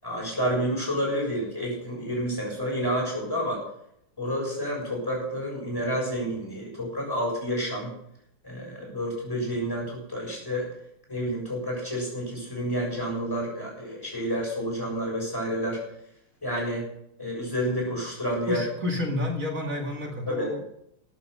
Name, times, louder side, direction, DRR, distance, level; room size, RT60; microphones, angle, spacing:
voice 1, 0.0-3.6 4.2-7.9 8.4-10.7 11.1-15.8 16.4-16.9 17.2-18.6 20.3-20.5, equal, 10° left, -2 dB, 7.1 m, -29 dB
voice 2, 18.5-20.6, left 2 dB, 40° right, 2 dB, 2.4 m, -30 dB
13.5 x 9.7 x 6.7 m, 0.74 s
omnidirectional pair, 2.3 m